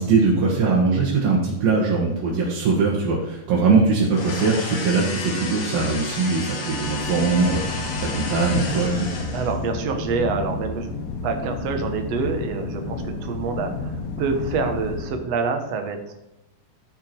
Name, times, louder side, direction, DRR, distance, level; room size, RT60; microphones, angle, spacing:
voice 1, 0.0-9.1, right 4 dB, 85° right, -5 dB, 3.5 m, -21 dB
sound 1, 4.1-9.7, left 3 dB, 55° left, 3.1 m, -32 dB
sound 2, 6.8-15.1, left 3 dB, 75° left, 3.1 m, -31 dB
voice 2, 9.3-10.9 11.2-16.1, right 4 dB, 60° right, 5 dB, 2.0 m, -26 dB
14.0 x 6.0 x 4.6 m, 0.90 s
omnidirectional pair, 4.0 m